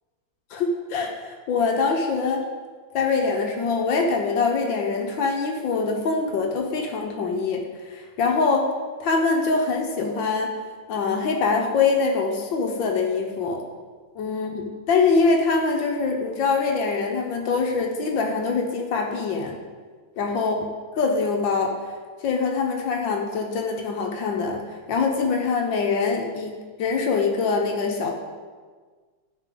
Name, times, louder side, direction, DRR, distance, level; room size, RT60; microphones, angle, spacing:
voice 1, 0.5-2.4 2.9-8.7 9.0-10.5 10.9-13.6 14.1-19.6 20.2-20.7 20.9-21.7 22.2-28.1, left 4 dB, 75° left, 2 dB, 1.6 m, -24 dB
12.5 x 5.3 x 3.8 m, 1.5 s
omnidirectional pair, 2.1 m